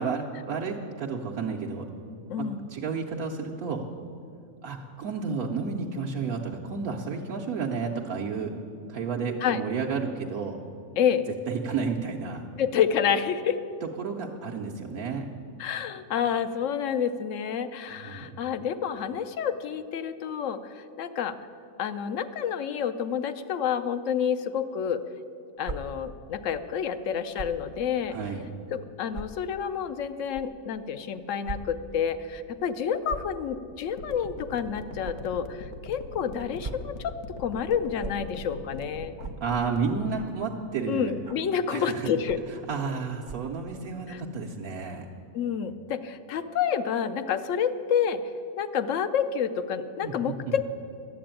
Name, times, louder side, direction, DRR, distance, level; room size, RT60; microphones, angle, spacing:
voice 1, 0.0-1.9 2.4-3.8 4.6-8.5 8.9-10.6 11.5-12.4 14.0-15.3 18.0-18.3 28.1-28.5 39.4-41.1 41.7-42.1 42.5-45.1 50.0-50.4, right 5 dB, 75° right, -1 dB, 1.2 m, -31 dB
voice 2, 2.3-2.7 9.4-9.6 11.0-11.3 12.6-13.6 15.6-21.3 21.8-25.0 25.6-28.2 28.7-37.1 37.4-39.2 40.9-42.4 44.1-44.2 45.3-48.2 48.6-50.6, left 8 dB, 65° left, 11 dB, 0.9 m, -29 dB
sound 1, 25.6-25.8 27.3-27.6 28.3-28.4 29.1-29.2 30.3-30.4 31.4-31.6 31.9-32.0 33.0-33.3 35.0-35.1 36.4-36.9 38.0-38.1 39.2-39.4 40.1-40.4 41.2-41.5 42.2-42.5 43.2-43.5, right 4 dB, 45° right, 0.8 m, -38 dB
sound 2, 33.9-39.8, left 3 dB, 90° left, 1.3 m, -41 dB
11.0 x 7.7 x 8.9 m, 2.6 s
omnidirectional pair, 1.5 m